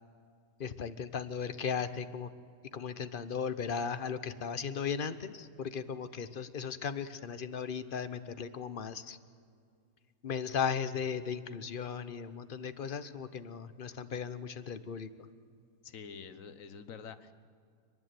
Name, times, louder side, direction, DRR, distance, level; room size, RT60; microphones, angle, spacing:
voice 1, 0.6-2.3 2.7-9.2 10.2-15.3, left 6 dB, 40° left, 12 dB, 0.8 m, -36 dB
voice 2, 15.8-17.3, left 6 dB, 55° left, 11 dB, 1.4 m, -47 dB
30.0 x 11.0 x 9.2 m, 2.3 s
omnidirectional pair, 1.7 m